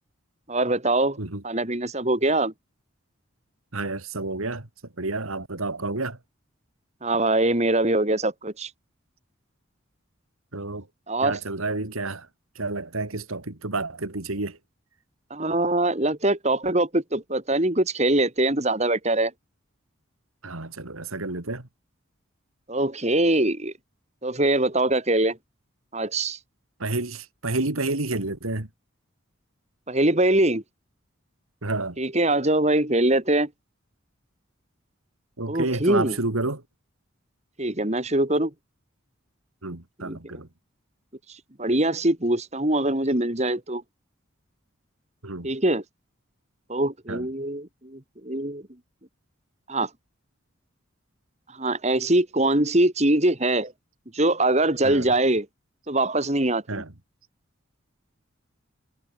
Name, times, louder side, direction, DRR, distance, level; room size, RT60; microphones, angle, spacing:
voice 1, 0.5-1.2 1.4-2.5 7.0-8.7 11.1-11.4 15.3-19.3 22.7-23.7 24.2-25.4 25.9-26.4 29.9-30.6 32.0-33.5 35.5-36.2 37.6-38.5 40.0-40.4 41.6-43.8 45.4-45.8 46.7-48.6 49.7-49.9 51.5-53.7 54.1-55.5 55.9-56.8, right 1 dB, 30° right, 2.3 m, -23 dB
voice 2, 3.7-4.7 5.0-6.2 10.5-10.9 11.2-12.3 12.6-14.6 20.4-21.7 26.8-28.7 31.6-32.0 35.4-36.6 39.6-40.5 45.2-45.5 47.1-47.3 54.8-55.1 56.7-56.9, right 2 dB, 90° right, 2.6 m, -30 dB
head